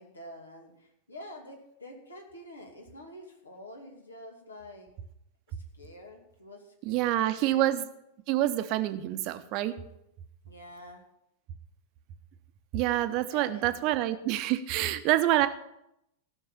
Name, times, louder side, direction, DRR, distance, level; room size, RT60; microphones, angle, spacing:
voice 1, 0.0-4.9 5.5-7.6 10.5-11.0 13.3-14.0, left 1 dB, 75° left, 2 dB, 2.4 m, -48 dB
voice 2, 6.9-7.8 8.3-9.7 12.7-15.5, right 14 dB, 40° right, 10 dB, 0.9 m, -27 dB
15.0 x 6.5 x 7.1 m, 0.82 s
figure-of-eight pair, 90°, 0 cm